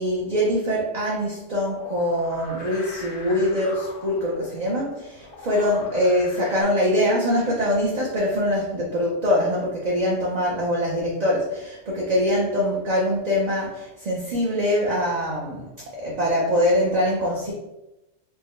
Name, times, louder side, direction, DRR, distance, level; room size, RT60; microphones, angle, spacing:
voice 1, 0.0-17.5, left 1 dB, 45° right, -4 dB, 0.6 m, -23 dB
sound 1, 1.6-6.6, left 3 dB, 55° left, 0.7 m, -42 dB
4.6 x 2.2 x 3.1 m, 0.96 s
omnidirectional pair, 1.3 m